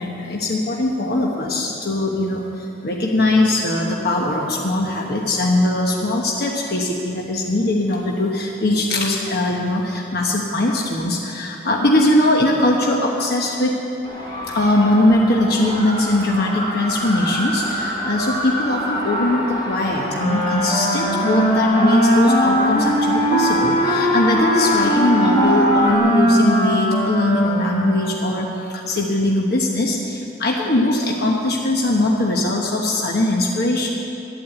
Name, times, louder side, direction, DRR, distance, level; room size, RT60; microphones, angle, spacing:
voice 1, 0.0-13.7 14.5-28.5 28.7-33.9, left 1 dB, 55° left, -1 dB, 1.1 m, -20 dB
sound 1, 14.0-26.0, equal, 25° left, 2.7 m, -28 dB
Wind instrument woodwind instrument, 20.1-28.4, equal, 40° left, 1.8 m, -19 dB
12.0 x 8.9 x 8.0 m, 2.9 s
head